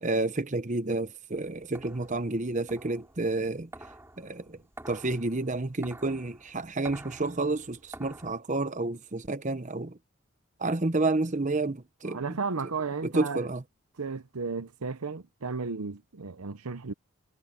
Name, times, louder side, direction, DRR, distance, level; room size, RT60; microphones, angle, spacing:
voice 1, 0.0-3.7 4.2-4.6 4.9-10.0 10.6-12.2 13.1-13.6, right 2 dB, 35° right, 0.9 m, -30 dB
sound 1, 1.4-8.4, right 1 dB, 10° right, 6.0 m, -49 dB
voice 2, 12.0-13.5 14.0-16.9, right 4 dB, 85° right, 0.9 m, -34 dB
head